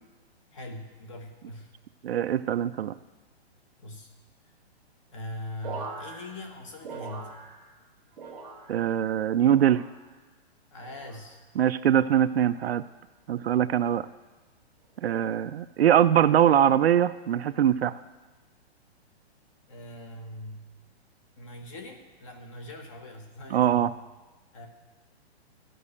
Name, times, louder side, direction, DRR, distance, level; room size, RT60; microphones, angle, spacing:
voice 1, 0.5-1.7 3.8-4.1 5.1-7.4 10.7-11.4 19.7-20.7 21.4-23.9 24.5-24.7, left 1 dB, 30° left, 4 dB, 1.3 m, -41 dB
voice 2, 2.0-3.0 8.7-9.8 11.6-12.8 13.3-14.1 15.0-18.0 23.5-23.9, right 10 dB, 65° right, 13 dB, 0.5 m, -22 dB
sound 1, 5.6-7.9 8.1-9.0 9.5-10.2 10.8-11.3 12.1-12.5 13.4-13.7, right 4 dB, 5° right, 0.5 m, -42 dB
12.5 x 5.4 x 8.5 m, 1.2 s
hypercardioid pair, 175°, 33 cm